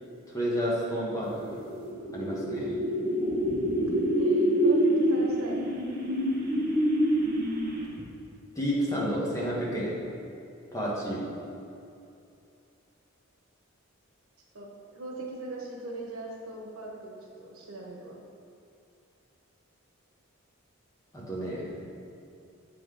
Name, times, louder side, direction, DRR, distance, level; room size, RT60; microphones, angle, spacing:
voice 1, 0.3-1.6 2.1-2.7 8.5-9.9 10.7-11.3 21.1-21.7, equal, 15° left, -6 dB, 1.3 m, -30 dB
sound 1, 1.5-8.0, equal, 45° right, 1.1 m, -26 dB
voice 2, 3.8-5.8 14.5-18.2, right 2 dB, 90° right, -2 dB, 1.2 m, -40 dB
7.5 x 3.9 x 4.9 m, 2.6 s
head